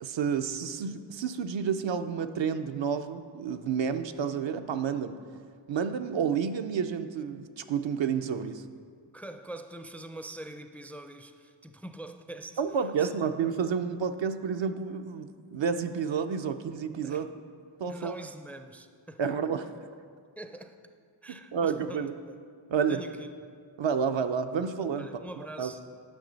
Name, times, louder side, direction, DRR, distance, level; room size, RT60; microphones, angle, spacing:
voice 1, 0.0-5.2 5.7-8.6 12.6-17.3 17.8-18.1 19.2-19.7 21.3-22.1 22.7-23.0 23.8-25.1 25.4-25.7, right 6 dB, 70° right, 8 dB, 0.5 m, -30 dB
voice 2, 9.1-12.6 13.0-13.1 17.0-17.2 17.9-19.2 20.4-20.8 21.2-22.4 22.9-23.3 25.0-25.8, right 1 dB, 5° left, 7 dB, 0.4 m, -44 dB
9.5 x 6.2 x 3.9 m, 2.1 s
cardioid pair, 50°, 47 cm